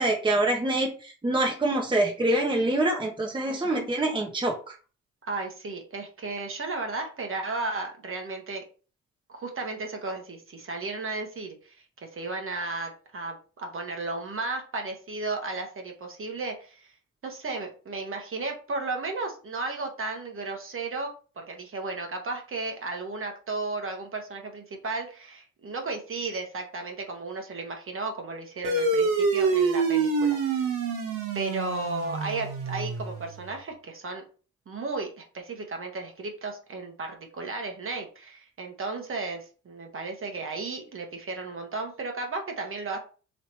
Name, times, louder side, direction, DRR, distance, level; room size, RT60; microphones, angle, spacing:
voice 1, 0.0-4.7, right 1 dB, 15° right, 1 dB, 1.1 m, -25 dB
voice 2, 3.5-3.9 5.2-8.6 9.3-11.8 12.0-16.9 17.2-30.7 31.3-34.2 34.7-43.0, right 3 dB, 40° right, 3 dB, 1.2 m, -34 dB
sound 1, 28.6-33.5, right 4 dB, 85° right, 1.3 m, -26 dB
3.3 x 2.8 x 4.4 m, 0.37 s
supercardioid pair, 65°, 31 cm